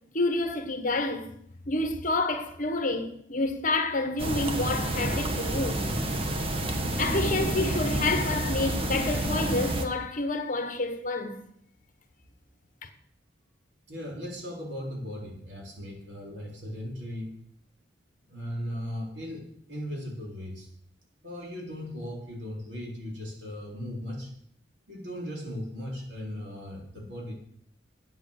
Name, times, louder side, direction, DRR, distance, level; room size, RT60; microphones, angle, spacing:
voice 1, 0.1-1.3 1.7-5.8 7.0-11.4, left 2 dB, 45° left, 1.2 m, -29 dB
sound 1, 4.2-9.8, right 1 dB, 30° right, 1.3 m, -29 dB
voice 2, 13.9-17.3 18.2-20.7 21.2-24.3 24.9-27.3, equal, 75° right, 3.9 m, -37 dB
10.0 x 8.8 x 6.5 m
head